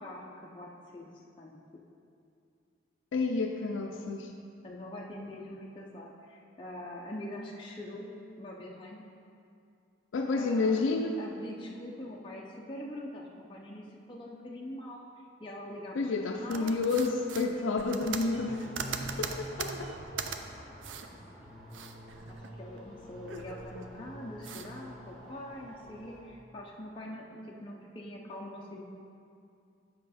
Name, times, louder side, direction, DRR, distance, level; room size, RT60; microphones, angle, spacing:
voice 1, 0.0-1.6 4.6-9.0 10.3-10.8 11.2-15.0 15.4-16.8 22.3-28.8, left 1 dB, 25° left, -3 dB, 0.5 m, -44 dB
voice 2, 3.1-4.3 10.1-11.2 16.0-18.7 19.2-19.9, left 3 dB, 90° left, 2 dB, 0.4 m, -30 dB
sound 1, 16.5-20.4 20.8-21.1 21.4-22.8 23.1-23.9 24.4-24.7, right 6 dB, 80° right, 0.5 m, -40 dB
sound 2, 18.3-26.2, right 1 dB, ahead, 1.9 m, -47 dB
7.6 x 5.6 x 4.1 m, 2.5 s
head